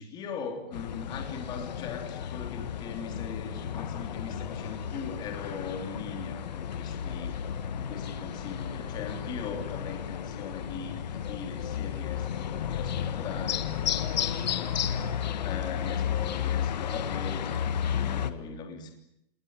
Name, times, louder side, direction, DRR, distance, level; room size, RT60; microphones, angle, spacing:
voice 1, 0.0-15.1 15.4-18.9, left 5 dB, 15° left, 4 dB, 3.2 m, -40 dB
sound 1, 0.7-18.3, left 9 dB, 45° left, 1.6 m, -33 dB
29.5 x 19.0 x 8.8 m, 0.78 s
hypercardioid pair, 170°, 31 cm